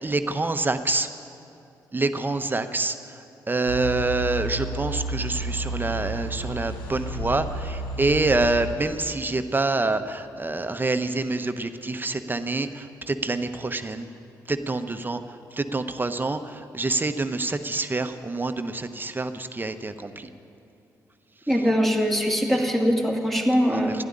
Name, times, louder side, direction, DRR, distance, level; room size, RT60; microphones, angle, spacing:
voice 1, 0.0-1.1 1.9-14.1 14.5-20.3 23.6-24.0, right 2 dB, 25° right, 9 dB, 0.9 m, -27 dB
sound 1, 3.6-8.7, right 1 dB, 85° left, 1.6 m, -32 dB
voice 2, 21.5-24.0, equal, ahead, 1 dB, 2.4 m, -22 dB
12.0 x 11.0 x 9.9 m, 2.7 s
supercardioid pair, 55°, 8 cm